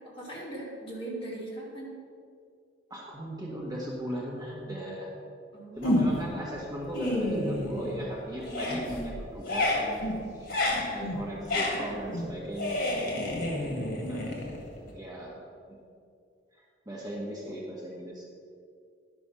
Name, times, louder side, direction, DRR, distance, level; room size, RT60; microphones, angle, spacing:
voice 1, 0.0-1.9 5.5-5.9, right 1 dB, 30° left, -5 dB, 2.3 m, -40 dB
voice 2, 2.9-5.1 5.8-10.0 10.3-14.5 14.9-15.4 16.5-18.2, equal, 20° right, -4 dB, 1.5 m, -37 dB
sound 1, 5.8-6.4 6.8-8.1 8.4-14.9, left 1 dB, 55° left, 1.8 m, -30 dB
11.0 x 5.5 x 5.5 m, 2.3 s
head